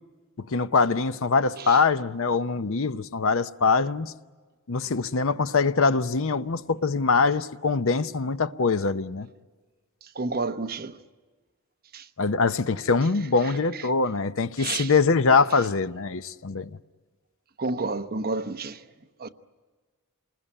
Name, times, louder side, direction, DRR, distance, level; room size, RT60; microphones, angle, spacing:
voice 1, 0.4-4.1 4.7-9.3 12.2-16.7, left 4 dB, 65° left, 0.7 m, -23 dB
voice 2, 10.0-11.0 11.9-12.1 14.6-14.9 17.6-18.8 19.2-19.3, right 3 dB, 45° right, 0.9 m, -30 dB
28.0 x 20.5 x 10.0 m
head